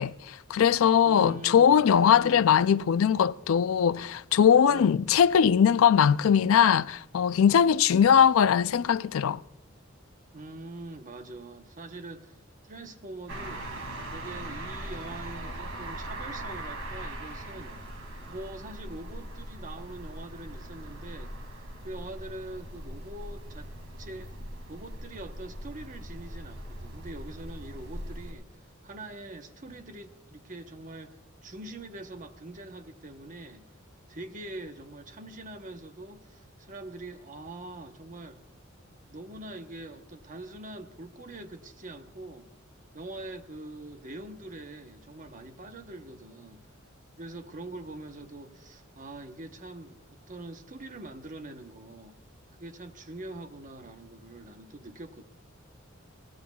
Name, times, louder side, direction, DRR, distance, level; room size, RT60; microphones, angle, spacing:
voice 1, 0.0-9.4, left 8 dB, 80° left, 0.4 m, -21 dB
voice 2, 1.0-1.8 2.1-2.6 4.7-5.0 10.3-12.4 12.6-13.7 14.1-17.9 18.3-23.7 24.0-24.3 24.7-33.7 34.1-38.4 39.1-42.5 42.9-46.6 47.2-52.2 52.6-55.2, right 2 dB, 40° right, 1.0 m, -43 dB
sound 1, 13.3-28.3, right 1 dB, 75° right, 2.5 m, -40 dB
22.0 x 17.0 x 2.3 m
head